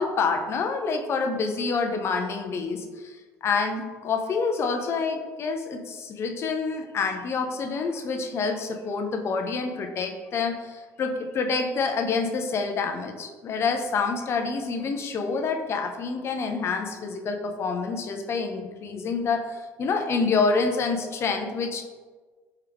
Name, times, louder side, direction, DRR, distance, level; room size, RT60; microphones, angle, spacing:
voice 1, 0.0-3.2 3.4-21.8, left 4 dB, 45° left, 5 dB, 0.5 m, -27 dB
4.5 x 3.4 x 3.4 m, 1.4 s
supercardioid pair, 105°, 6 cm